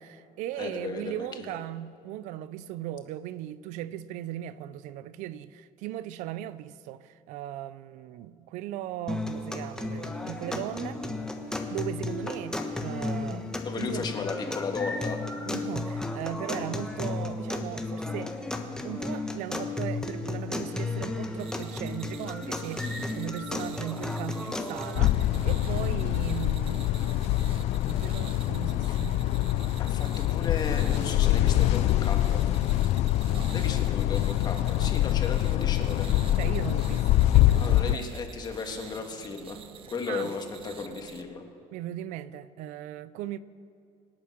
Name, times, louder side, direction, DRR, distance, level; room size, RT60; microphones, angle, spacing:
voice 1, 0.0-11.0 11.7-14.1 15.4-18.3 18.8-27.2 27.8-29.7 33.3-33.5 34.7-35.0 36.3-38.0 40.1-40.3 41.7-43.4, right 12 dB, 75° right, 0.6 m, -38 dB
voice 2, 0.6-1.6 13.6-15.2 29.8-32.4 33.5-36.1 37.6-39.6 39.9-41.4, left 5 dB, 35° left, 1.8 m, -35 dB
sound 1, 9.1-25.1, left 2 dB, 5° left, 1.2 m, -34 dB
sound 2, 21.4-41.2, right 8 dB, 45° right, 0.9 m, -47 dB
sound 3, 24.9-38.0, left 14 dB, 60° left, 0.4 m, -25 dB
26.0 x 8.7 x 6.0 m
cardioid pair, 145°, 13 cm